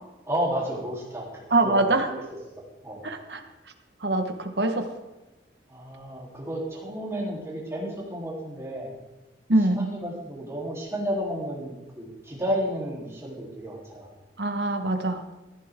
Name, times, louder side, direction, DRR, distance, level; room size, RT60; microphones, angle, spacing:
voice 1, 0.3-2.2 2.6-3.0 5.7-8.9 9.6-14.1, equal, 15° right, -4 dB, 3.5 m, -32 dB
voice 2, 1.5-2.0 3.0-3.4 4.0-4.9 9.5-9.9 14.4-15.2, right 2 dB, 65° right, 6 dB, 1.4 m, -23 dB
14.5 x 14.0 x 3.7 m, 1.0 s
head